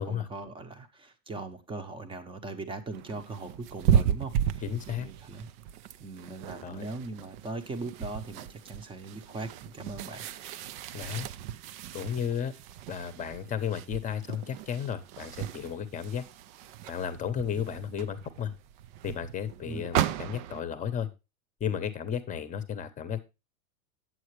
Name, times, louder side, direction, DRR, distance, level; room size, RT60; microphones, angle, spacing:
voice 1, 0.0-5.5 6.0-10.2 19.7-19.9, right 3 dB, 10° right, 8 dB, 0.9 m, -40 dB
sound 1, 2.9-20.6, right 9 dB, 35° right, 0.5 m, -34 dB
voice 2, 4.6-5.1 6.6-6.9 10.9-11.3 11.9-12.5 12.9-16.2 16.9-18.5 19.0-21.1 21.6-23.2, left 8 dB, 20° left, 11 dB, 1.0 m, -33 dB
8.7 x 7.8 x 3.2 m, 0.26 s
supercardioid pair, 135°, 42 cm